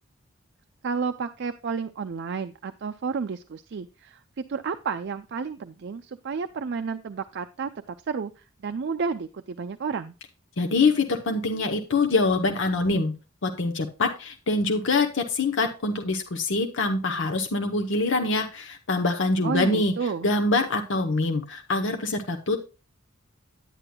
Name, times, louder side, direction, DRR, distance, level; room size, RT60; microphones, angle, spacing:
voice 1, 0.8-4.2 4.5-10.1 19.4-20.3, right 5 dB, 55° right, 8 dB, 0.4 m, -31 dB
voice 2, 10.6-13.1 13.4-20.0 20.2-22.6, left 3 dB, 65° left, 6 dB, 0.9 m, -24 dB
9.8 x 9.4 x 2.2 m, 0.31 s
head